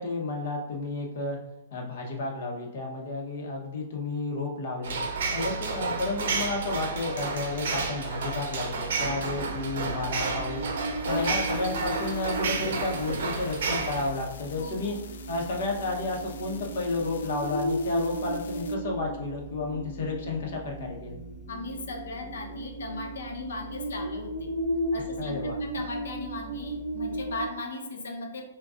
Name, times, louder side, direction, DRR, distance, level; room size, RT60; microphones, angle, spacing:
voice 1, 0.0-1.4 1.7-5.0 5.3-15.0 15.3-21.2 25.2-25.6, left 3 dB, 45° left, -1 dB, 0.9 m, -32 dB
sound 1, 4.8-14.1, right 4 dB, 60° right, 0.6 m, -31 dB
sound 2, 9.1-27.5, right 1 dB, 10° left, 0.7 m, -36 dB
sound 3, 11.0-18.8, left 6 dB, 65° left, 0.4 m, -49 dB
voice 2, 11.1-11.4 14.6-14.9 21.5-24.5 24.9-28.5, left 2 dB, 85° left, 2 dB, 0.8 m, -37 dB
6.2 x 2.3 x 2.5 m, 0.93 s
hypercardioid pair, 175°, 0 cm